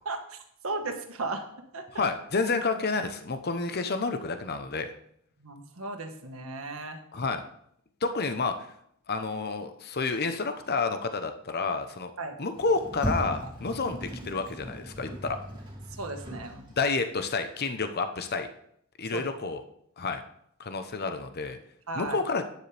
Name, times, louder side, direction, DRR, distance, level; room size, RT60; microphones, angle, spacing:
voice 1, 0.0-0.4 0.6-1.4 1.7-2.0 5.4-7.0 12.2-12.3 16.0-16.7 19.1-19.2 21.9-22.2, right 3 dB, 80° right, 5 dB, 1.6 m, -35 dB
voice 2, 1.9-4.9 7.1-7.4 8.0-8.7 9.1-12.1 12.4-15.4 16.8-18.5 19.0-19.6 20.0-20.2 20.6-21.6 21.9-22.4, left 4 dB, 50° left, 8 dB, 0.9 m, -29 dB
Sliding door, 12.5-17.0, equal, 20° right, 2.6 m, -37 dB
12.0 x 9.6 x 3.4 m, 0.69 s
head